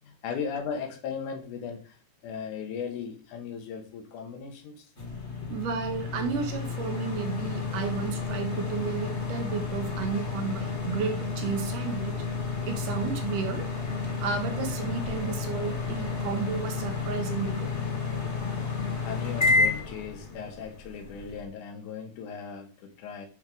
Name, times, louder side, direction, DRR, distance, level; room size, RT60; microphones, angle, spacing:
voice 1, 0.0-2.0 2.2-4.9 5.4-5.5 19.0-23.3, left 6 dB, 80° left, 5 dB, 2.8 m, -37 dB
sound 1, 5.0-21.4, left 4 dB, 35° left, 1.2 m, -31 dB
voice 2, 5.5-12.2 12.7-13.7 14.2-17.7, right 6 dB, 85° right, 5 dB, 2.8 m, -33 dB
10.5 x 4.7 x 3.9 m, 0.38 s
omnidirectional pair, 3.6 m